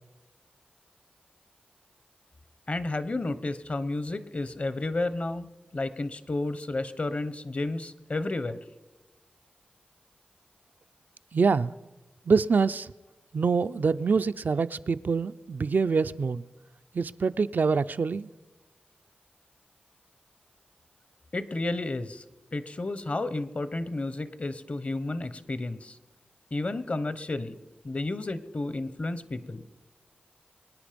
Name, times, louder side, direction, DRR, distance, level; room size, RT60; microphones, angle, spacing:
voice 1, 2.7-8.6 21.3-22.2 22.5-26.0 26.5-27.6 27.8-29.6, left 2 dB, 40° left, 0.9 m, -32 dB
voice 2, 11.3-11.7 12.3-12.9 13.3-16.4 16.9-18.3, right 5 dB, 60° right, 0.4 m, -25 dB
23.5 x 9.8 x 5.2 m
cardioid pair, 65°, 3 cm